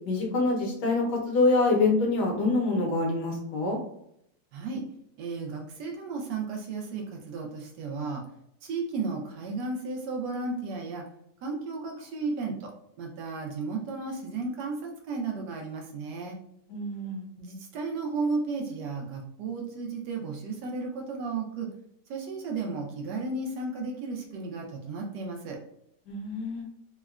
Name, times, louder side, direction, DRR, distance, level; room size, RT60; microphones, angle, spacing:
voice 1, 0.1-3.8 16.7-17.3 26.1-26.7, left 3 dB, 75° left, 0 dB, 1.4 m, -25 dB
voice 2, 4.5-4.8 5.2-8.2 8.6-11.0 11.4-12.7 13.0-16.4 17.4-21.7 22.1-25.6, right 4 dB, 80° right, 1 dB, 1.2 m, -34 dB
3.7 x 2.1 x 2.3 m, 0.74 s
omnidirectional pair, 1.8 m